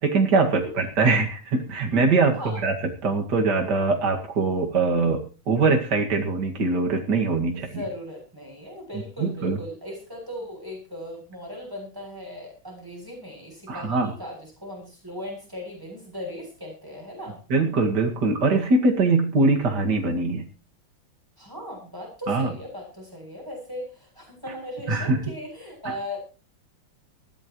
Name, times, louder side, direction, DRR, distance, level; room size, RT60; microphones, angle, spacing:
voice 1, 0.0-7.8 9.2-9.6 13.7-14.1 17.5-20.5 22.3-22.5 24.9-25.2, right 3 dB, 55° right, 2 dB, 2.7 m, -22 dB
voice 2, 7.5-17.4 21.4-26.2, equal, 10° right, 0 dB, 8.1 m, -38 dB
20.0 x 15.5 x 3.1 m, 0.36 s
omnidirectional pair, 2.2 m